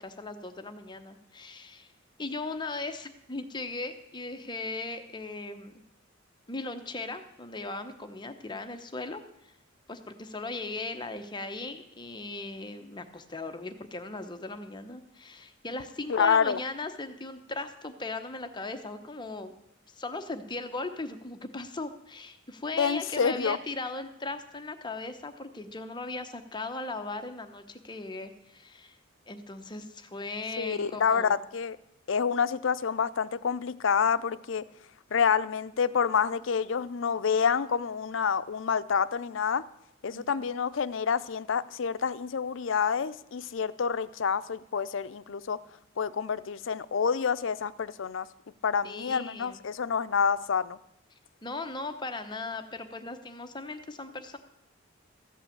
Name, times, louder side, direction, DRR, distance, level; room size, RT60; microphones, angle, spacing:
voice 1, 0.0-1.9 2.2-5.7 6.5-9.5 9.9-19.5 19.9-29.0 29.3-31.3 40.1-40.3 48.8-49.6 51.4-54.4, left 3 dB, 20° left, 8 dB, 0.8 m, -38 dB
voice 2, 16.1-16.6 22.8-23.6 30.6-31.8 32.1-34.6 35.1-39.6 40.0-45.6 46.0-48.3 48.6-50.8, left 6 dB, 65° left, 15 dB, 0.5 m, -28 dB
14.5 x 5.5 x 8.6 m, 0.80 s
head